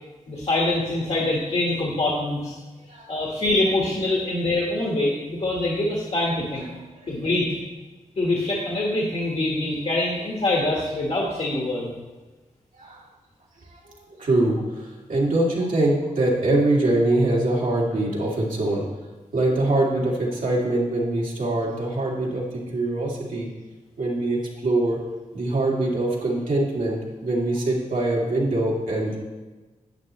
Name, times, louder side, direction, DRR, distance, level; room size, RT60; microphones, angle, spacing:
voice 1, 0.3-2.6 3.1-6.7 7.1-7.5 8.2-12.0, left 2 dB, 55° left, -3 dB, 1.5 m, -24 dB
voice 2, 6.5-7.2 9.9-10.1 12.7-13.0 13.7-13.8 14.2-18.8 19.3-23.5 24.0-25.0 25.3-29.2, right 2 dB, 80° right, -4 dB, 2.4 m, -23 dB
10.5 x 8.8 x 3.1 m, 1.2 s
wide cardioid pair, 85°, 13 cm